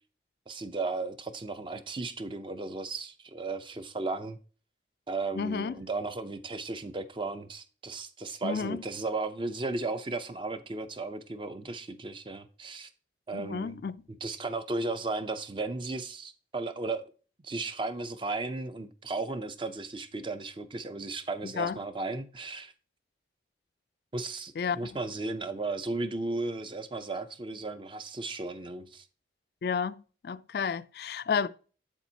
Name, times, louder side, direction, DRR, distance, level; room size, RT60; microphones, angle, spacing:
voice 1, 0.5-4.4 5.1-12.9 13.3-13.8 14.2-17.0 17.4-22.7 24.1-29.0, right 3 dB, 25° right, 0.5 m, -35 dB
voice 2, 5.4-5.7 8.4-8.8 13.3-14.0 21.4-21.8 24.6-24.8 29.6-29.9 30.2-31.5, left 6 dB, 55° left, 0.3 m, -31 dB
7.7 x 7.1 x 2.8 m
head